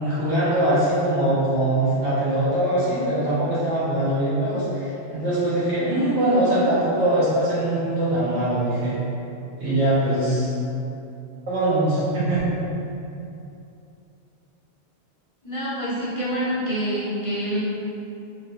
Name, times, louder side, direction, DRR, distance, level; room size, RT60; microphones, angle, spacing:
voice 1, 0.0-9.0 9.6-10.5 11.5-12.4, right 1 dB, 80° right, -10 dB, 1.4 m, -22 dB
voice 2, 15.4-17.6, equal, 40° left, -9 dB, 0.6 m, -26 dB
3.3 x 2.9 x 2.5 m, 2.7 s
omnidirectional pair, 1.1 m